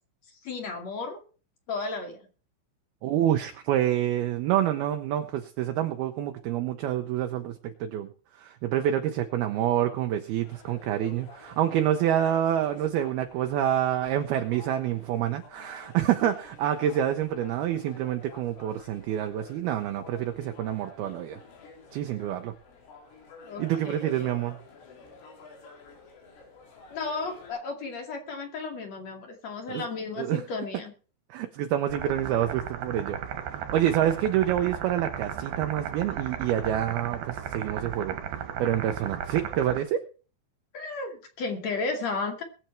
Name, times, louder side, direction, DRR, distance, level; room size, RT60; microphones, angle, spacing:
voice 1, 0.4-1.2 1.7-2.2 23.4-24.3 26.9-30.9 40.7-42.4, left 4 dB, 45° left, 4 dB, 2.8 m, -34 dB
voice 2, 3.0-8.1 8.4-21.4 21.9-22.5 23.6-24.6 29.7-29.8 30.2-30.4 31.3-38.2 38.6-40.0, right 11 dB, 80° right, 6 dB, 2.2 m, -27 dB
sound 1, 10.4-27.5, left 4 dB, 85° left, 6.3 m, -50 dB
sound 2, 31.9-39.8, right 9 dB, 65° right, 2.8 m, -35 dB
21.5 x 8.1 x 4.4 m, 0.37 s
omnidirectional pair, 5.5 m